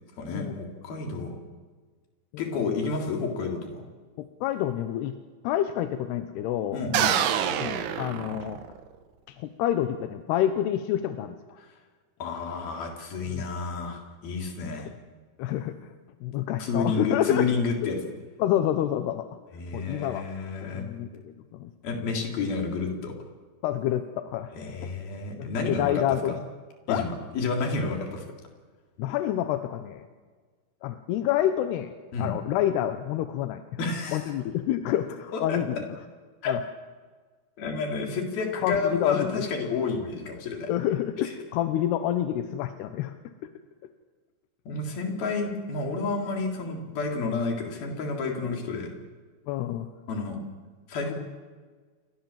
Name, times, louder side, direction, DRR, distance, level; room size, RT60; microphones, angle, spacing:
voice 1, 0.2-1.4 2.4-3.8 6.7-7.1 11.6-11.7 12.2-14.9 16.6-18.0 19.5-20.8 21.8-23.1 24.5-26.4 26.9-28.2 32.1-32.3 33.8-34.3 35.3-35.6 36.4-36.6 37.6-40.7 41.2-41.3 44.7-48.9 50.1-50.4 50.9-51.1, left 4 dB, 55° left, 2 dB, 5.2 m, -30 dB
voice 2, 4.2-5.2 5.4-6.8 7.5-8.6 9.3-11.4 13.3-13.5 15.4-15.9 16.2-17.5 18.4-19.3 19.7-20.3 20.6-21.7 23.6-24.5 24.8-24.9 25.4-26.4 26.9-27.1 29.0-30.0 30.8-31.9 32.2-33.6 34.1-35.8 36.5-36.6 38.6-39.4 40.7-43.1 43.4-43.5 49.5-49.9, left 11 dB, 75° left, 9 dB, 2.8 m, -28 dB
sound 1, 6.9-8.9, right 9 dB, 65° right, 3.1 m, -26 dB
29.0 x 23.5 x 7.5 m, 1.4 s
omnidirectional pair, 5.4 m